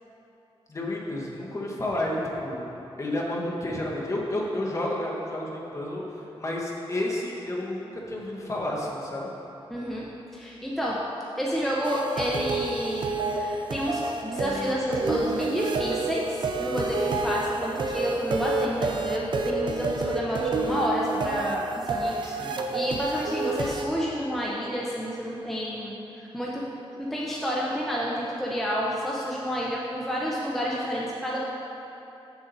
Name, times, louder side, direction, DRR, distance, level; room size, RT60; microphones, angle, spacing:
voice 1, 0.7-2.7 3.0-6.0 6.4-9.3 22.2-22.6, left 1 dB, 30° left, -4 dB, 1.2 m, -31 dB
voice 2, 9.7-10.0 10.3-11.0 11.4-26.6 26.9-31.4, equal, ahead, -5 dB, 0.7 m, -30 dB
sound 1, 11.8-23.8, right 3 dB, 50° right, 0.5 m, -29 dB
7.4 x 7.2 x 4.0 m, 3.0 s
wide cardioid pair, 145°, 10 cm